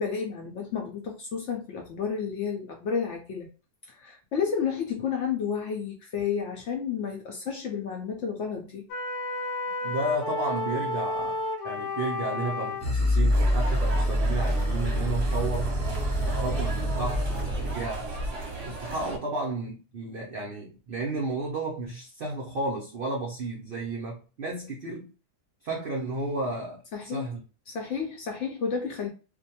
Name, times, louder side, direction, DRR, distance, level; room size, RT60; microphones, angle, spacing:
voice 1, 0.0-3.5 3.9-8.9 26.9-27.3 27.7-29.1, left 6 dB, 65° left, 0.7 m, -31 dB
sound 1, 8.9-12.9, left 2 dB, 85° left, 1.1 m, -31 dB
voice 2, 9.8-15.8 16.2-18.1 18.6-25.1 25.6-26.8 27.1-27.4, right 2 dB, 70° right, 0.5 m, -33 dB
sound 2, 12.8-18.0, equal, 5° left, 0.7 m, -26 dB
sound 3, 13.3-19.2, right 2 dB, 55° right, 0.8 m, -35 dB
2.5 x 2.2 x 2.7 m
omnidirectional pair, 1.6 m